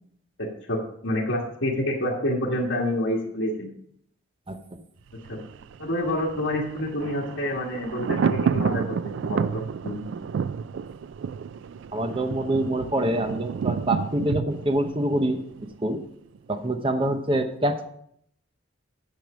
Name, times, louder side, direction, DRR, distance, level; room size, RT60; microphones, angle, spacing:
voice 1, 0.4-3.7 5.3-5.4 5.8-10.1, left 1 dB, 75° left, -6 dB, 1.6 m, -28 dB
voice 2, 4.5-4.8 11.9-15.4 15.8-16.0 16.5-17.9, right 1 dB, 25° right, 7 dB, 0.7 m, -25 dB
Thunder, 5.1-16.0 16.3-16.4, right 6 dB, 65° right, 0.3 m, -30 dB
9.3 x 6.7 x 4.9 m, 0.69 s
head